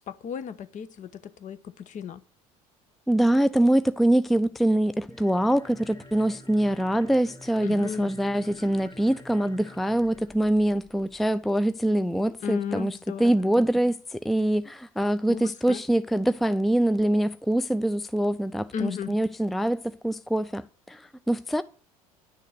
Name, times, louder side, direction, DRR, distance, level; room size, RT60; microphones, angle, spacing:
voice 1, 0.1-2.2 7.6-8.1 12.4-13.3 15.3-15.8 18.7-19.2, left 7 dB, 40° left, 1.1 m, -34 dB
voice 2, 3.1-21.6, right 1 dB, ahead, 0.5 m, -24 dB
sound 1, 5.0-11.3, left 1 dB, 25° left, 2.3 m, -49 dB
10.5 x 6.5 x 6.7 m
hypercardioid pair, 65°, 19 cm